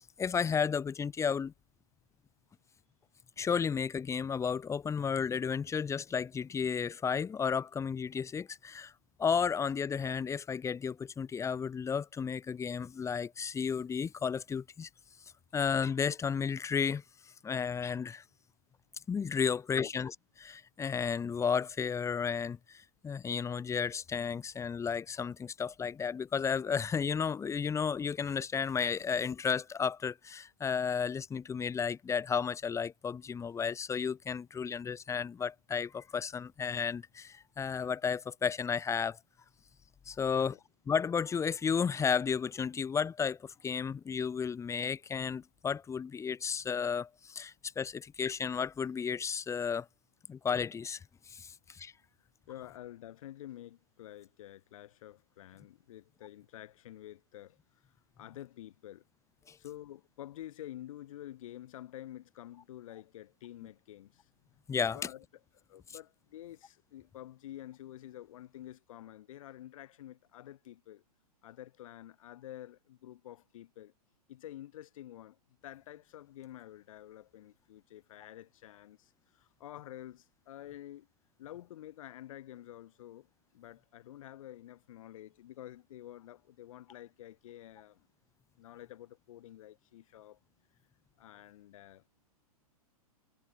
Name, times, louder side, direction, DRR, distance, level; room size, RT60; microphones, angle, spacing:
voice 1, 0.2-1.5 3.4-8.9 9.2-14.9 15.5-17.0 17.4-18.2 19.1-39.2 40.1-40.6 40.9-49.9 50.3-51.0 51.3-51.9 59.5-59.6 64.7-65.0, left 6 dB, 15° left, 2.5 m, -33 dB
voice 2, 19.5-19.9 40.2-40.6 52.5-57.6 58.2-59.0 59.6-64.3 64.9-65.2 65.7-71.0 71.4-73.9 74.3-81.1 81.4-88.1 88.6-90.4 91.2-92.0, left 13 dB, 60° left, 5.7 m, -49 dB
hypercardioid pair, 120°, 19 cm